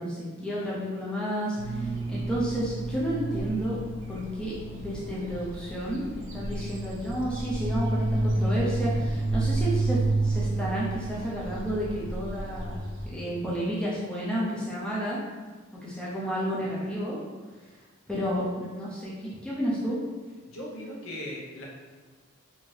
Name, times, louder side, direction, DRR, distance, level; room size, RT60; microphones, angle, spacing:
voice 1, 0.0-3.8 4.1-12.8 13.1-15.2 15.7-17.2 18.1-20.0, equal, 5° left, -7 dB, 0.5 m, -31 dB
sound 1, 1.6-13.1, right 2 dB, 60° right, 0.5 m, -30 dB
voice 2, 20.5-21.6, left 1 dB, 70° left, -4 dB, 0.7 m, -38 dB
2.6 x 2.6 x 3.2 m, 1.4 s
head